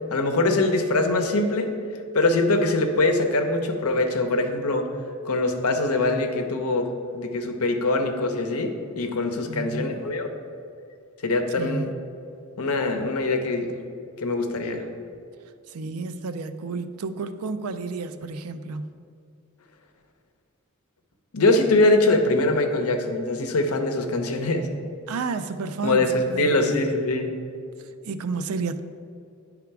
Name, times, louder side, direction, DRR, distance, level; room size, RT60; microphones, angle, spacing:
voice 1, 0.0-1.7 2.1-4.9 5.2-6.9 7.1-10.3 11.2-11.9 12.6-13.7 14.2-14.8 21.3-24.7 25.8-27.4, left 2 dB, 85° left, 5 dB, 0.8 m, -23 dB
voice 2, 9.5-10.0 11.6-12.0 15.7-19.0 25.1-26.9 28.0-28.8, right 4 dB, 80° right, 11 dB, 0.4 m, -31 dB
9.9 x 3.6 x 4.7 m, 2.4 s
head